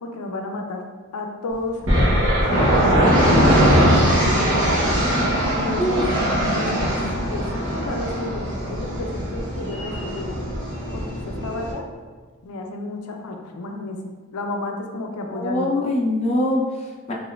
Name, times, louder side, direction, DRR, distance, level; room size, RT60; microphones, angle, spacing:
voice 1, 0.0-0.8 1.1-2.2 2.8-3.5 4.2-4.8 5.5-6.0 6.5-7.0 7.3-10.3 10.9-11.9 12.4-14.0 14.3-15.7, left 2 dB, 90° left, 3 dB, 0.4 m, -32 dB
sound 1, 1.9-11.7, equal, 60° right, 1.1 m, -20 dB
voice 2, 15.3-17.1, left 1 dB, 30° left, -3 dB, 0.5 m, -23 dB
4.1 x 3.0 x 2.3 m, 1.4 s
head